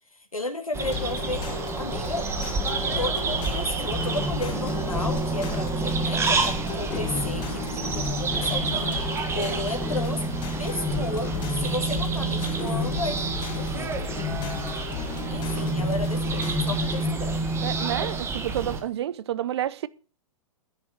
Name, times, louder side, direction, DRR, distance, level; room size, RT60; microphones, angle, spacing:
voice 1, 0.1-1.5 1.8-2.3 3.0-9.0 9.3-10.2 10.5-11.3 11.6-14.1 15.3-17.4, left 2 dB, 80° left, 2.2 m, -33 dB
sound 1, 0.7-18.8, right 4 dB, 15° right, 1.8 m, -28 dB
sound 2, 0.9-16.9, left 10 dB, 30° left, 1.6 m, -36 dB
sound 3, 4.0-9.3 9.8-15.1 15.5-17.9, left 5 dB, 10° left, 3.6 m, -35 dB
voice 2, 17.6-19.9, right 12 dB, 50° right, 0.7 m, -29 dB
10.5 x 8.6 x 6.4 m
figure-of-eight pair, 110°, 18 cm